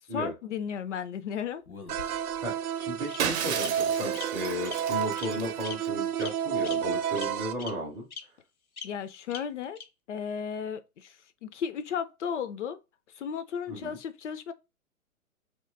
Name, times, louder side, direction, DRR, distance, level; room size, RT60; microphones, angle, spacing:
voice 1, 0.1-1.6 8.8-9.8 10.1-11.2 11.4-12.8 13.1-14.5, left 7 dB, 55° left, 0.5 m, -34 dB
Bird vocalization bird call bird song, 1.7-2.4 3.1-3.2 3.6-3.7 4.1-4.2 4.6-4.8 5.2-5.3 5.6-5.7 6.2-6.3 6.6-6.7 7.2-7.3 7.6-7.7 8.1-8.2 8.8-8.9 9.3-9.4 9.8-9.9, left 6 dB, 80° left, 1.1 m, -40 dB
sound 1, 1.9-7.5, right 8 dB, 85° right, 0.5 m, -31 dB
voice 2, 2.4-8.1 13.7-14.0, equal, 10° right, 0.5 m, -34 dB
Shatter, 3.2-5.9, right 8 dB, 50° right, 0.7 m, -34 dB
2.9 x 2.8 x 3.3 m
hypercardioid pair, 130°, 43 cm